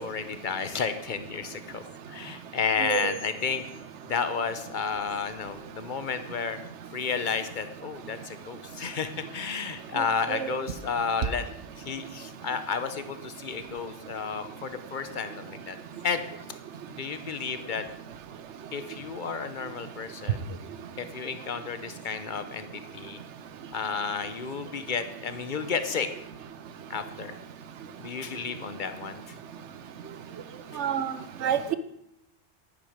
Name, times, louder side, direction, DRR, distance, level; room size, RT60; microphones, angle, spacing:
voice 1, 0.0-3.6 4.0-6.6 6.9-11.4 11.8-15.8 16.0-16.2 17.0-17.8 18.7-20.5 21.0-23.2 23.7-26.1 26.9-27.3 28.0-29.3, left 5 dB, 45° left, 10 dB, 1.0 m, -32 dB
voice 2, 2.8-3.1 10.3-10.5 30.8-31.1 31.4-31.7, right 8 dB, 80° right, 12 dB, 1.1 m, -27 dB
11.0 x 10.5 x 5.1 m, 0.79 s
omnidirectional pair, 1.2 m